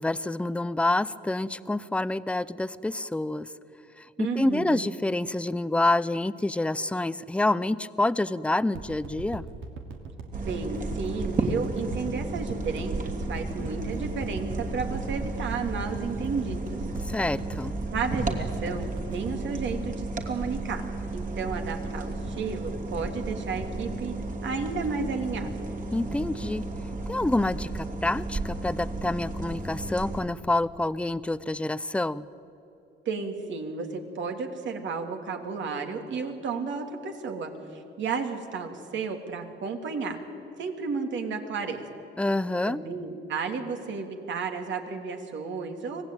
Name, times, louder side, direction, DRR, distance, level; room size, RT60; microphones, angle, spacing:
voice 1, 0.0-3.5 4.0-9.5 17.0-17.8 25.9-26.7 27.1-32.3 42.2-42.8, left 2 dB, 5° left, 16 dB, 0.6 m, -27 dB
voice 2, 4.2-4.8 10.4-16.8 17.9-20.8 21.1-25.6 33.0-40.2 40.6-41.9 42.6-46.0, right 5 dB, 70° right, 4 dB, 2.8 m, -33 dB
sound 1, 8.7-21.1 21.5-21.6, right 4 dB, 90° right, 2.7 m, -39 dB
sound 2, 10.3-30.2, right 2 dB, 40° right, 3.0 m, -33 dB
25.0 x 17.5 x 9.1 m, 2.9 s
cardioid pair, 90°, 20 cm